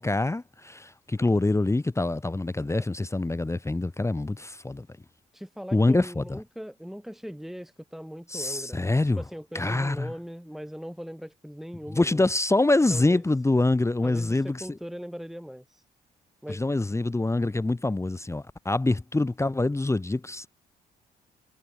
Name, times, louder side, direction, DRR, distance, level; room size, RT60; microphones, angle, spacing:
voice 1, 0.0-4.9 5.7-6.4 8.3-9.2 9.5-10.1 11.9-14.8 16.5-20.5, left 2 dB, 15° left, 1.0 m, -25 dB
voice 2, 5.3-12.2 12.9-13.2 14.0-15.8 16.4-16.6, equal, ahead, 4.4 m, -40 dB
hypercardioid pair, 50°, 19 cm